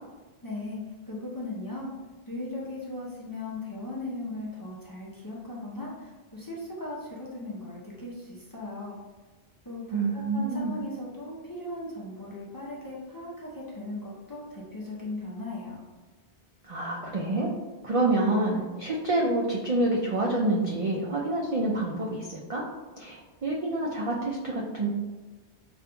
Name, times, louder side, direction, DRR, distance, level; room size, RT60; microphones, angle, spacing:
voice 1, 0.4-1.9 2.3-9.0 9.6-15.8, left 2 dB, 30° left, -6 dB, 0.4 m, -38 dB
voice 2, 9.9-10.7 16.6-17.5 17.8-22.6 23.0-24.9, right 2 dB, 60° right, -3 dB, 0.3 m, -27 dB
5.1 x 2.5 x 2.2 m, 1.3 s
omnidirectional pair, 1.1 m